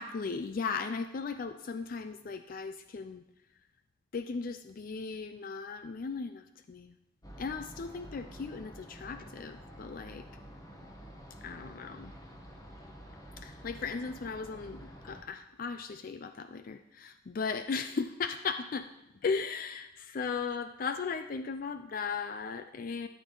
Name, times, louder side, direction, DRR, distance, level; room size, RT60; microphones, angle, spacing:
voice 1, 0.0-3.2 4.1-6.9 7.4-10.3 11.4-12.1 13.4-18.9 19.2-23.1, left 5 dB, 45° left, 9 dB, 0.4 m, -37 dB
sound 1, 7.2-15.2, equal, 20° left, 1.2 m, -49 dB
13.0 x 8.2 x 3.8 m, 0.89 s
head